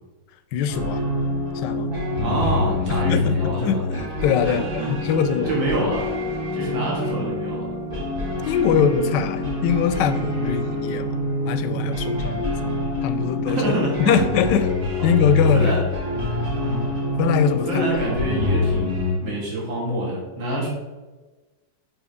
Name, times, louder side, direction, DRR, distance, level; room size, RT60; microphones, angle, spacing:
voice 1, 0.5-1.0 1.5-1.9 2.9-5.6 8.4-11.1 11.5-12.5 13.0-13.6 14.0-14.7 15.0-15.7 16.2-16.4 17.2-17.9, left 7 dB, 75° left, 11 dB, 1.2 m, -22 dB
sound 1, 0.7-19.2, left 2 dB, 50° right, 3.2 m, -26 dB
voice 2, 2.2-3.8 4.4-4.9 5.5-6.1 6.5-7.7 13.5-14.3 15.0-15.2 15.5-15.8 16.6-16.9 17.6-20.7, right 1 dB, 80° right, -4 dB, 2.7 m, -26 dB
7.6 x 5.8 x 3.5 m, 1.2 s
omnidirectional pair, 2.1 m